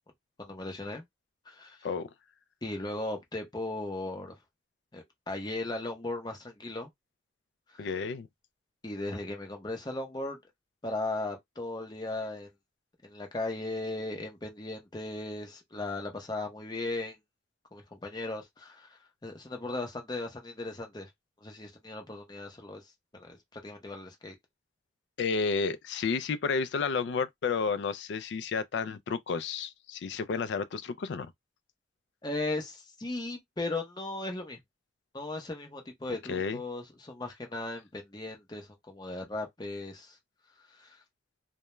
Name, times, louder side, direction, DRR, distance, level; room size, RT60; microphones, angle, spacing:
voice 1, 0.4-1.0 1.5-1.9 2.6-4.3 4.9-6.9 7.8-7.9 8.8-10.4 10.8-12.5 13.0-17.2 17.7-21.1 21.4-22.8 23.1-24.4 32.2-34.6 35.1-40.2 40.7-41.0, left 2 dB, 20° left, 0.7 m, -37 dB
voice 2, 7.8-8.3 25.2-31.3 36.3-36.6, left 5 dB, 70° left, 0.3 m, -31 dB
2.2 x 2.1 x 3.0 m
head